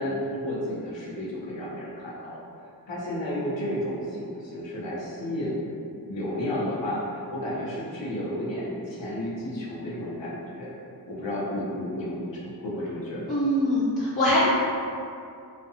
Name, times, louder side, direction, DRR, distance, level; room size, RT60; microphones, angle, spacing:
voice 1, 0.0-2.4 2.9-5.7 6.1-10.7 11.1-13.4, left 1 dB, 85° left, -6 dB, 0.7 m, -32 dB
voice 2, 13.3-14.5, left 1 dB, 20° left, -8 dB, 0.4 m, -22 dB
2.6 x 2.2 x 2.7 m, 2.4 s
wide cardioid pair, 95°, 43 cm